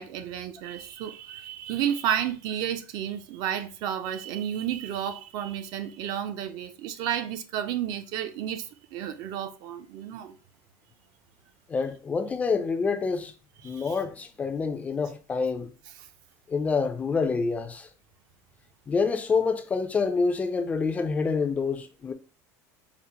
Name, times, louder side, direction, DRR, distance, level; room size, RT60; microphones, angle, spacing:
voice 1, 0.0-10.4 13.6-14.0 16.0-16.1, right 10 dB, 55° right, 0.5 m, -32 dB
voice 2, 11.7-13.3 13.6-15.7 16.5-17.9 18.9-22.1, left 4 dB, 15° left, 0.3 m, -27 dB
4.8 x 2.0 x 2.8 m
cardioid pair, 150°, 8 cm